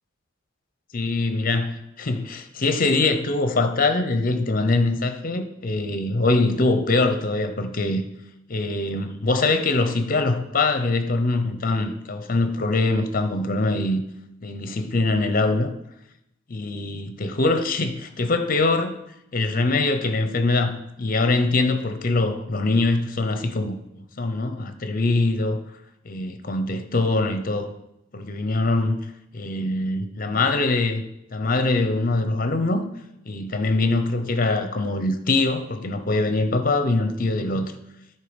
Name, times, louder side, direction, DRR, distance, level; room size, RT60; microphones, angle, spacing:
voice 1, 0.9-8.0 8.5-14.0 14.4-15.7 16.5-19.0 19.3-25.6 26.0-27.7 28.1-29.1 29.3-31.0 31.3-32.9 33.3-37.7, left 2 dB, 45° left, 9 dB, 0.7 m, -23 dB
10.0 x 4.6 x 5.1 m, 0.86 s
head